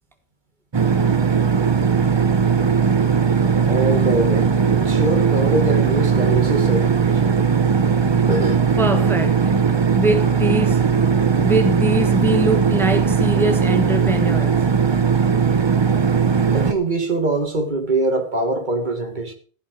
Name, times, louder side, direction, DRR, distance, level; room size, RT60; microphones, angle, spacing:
sound 1, 0.7-16.7, right 6 dB, 30° right, 0.7 m, -18 dB
voice 1, 3.7-7.4 8.3-8.6 16.5-19.3, right 2 dB, 45° right, 1.9 m, -23 dB
voice 2, 8.8-9.5 9.9-11.1 11.4-14.7, right 1 dB, ahead, 1.2 m, -23 dB
15.0 x 5.8 x 6.2 m
omnidirectional pair, 1.1 m